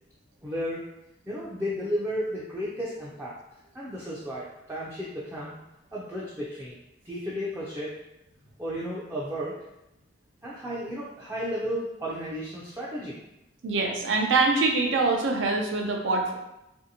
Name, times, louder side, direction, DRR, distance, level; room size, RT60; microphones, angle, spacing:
voice 1, 0.4-0.9 1.3-3.4 3.7-5.5 5.9-6.8 7.0-8.0 8.6-9.6 10.4-13.2, equal, 10° right, -7 dB, 0.3 m, -33 dB
voice 2, 13.6-16.3, right 3 dB, 85° right, 1 dB, 0.5 m, -24 dB
2.7 x 2.5 x 2.7 m, 0.90 s
head